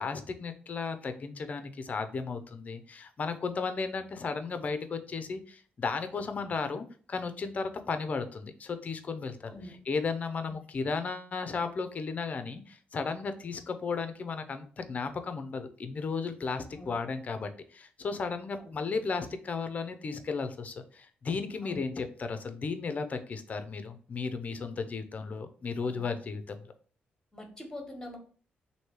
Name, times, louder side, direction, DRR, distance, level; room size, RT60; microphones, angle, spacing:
voice 1, 0.0-26.6, left 4 dB, 40° left, 9 dB, 0.5 m, -35 dB
voice 2, 9.4-9.8 10.5-10.6 16.7-17.0 18.6-18.8 21.6-21.8 25.8-26.0 27.3-28.2, left 1 dB, 15° left, 2 dB, 1.3 m, -44 dB
3.2 x 2.7 x 4.4 m, 0.42 s
cardioid pair, 95°, 4 cm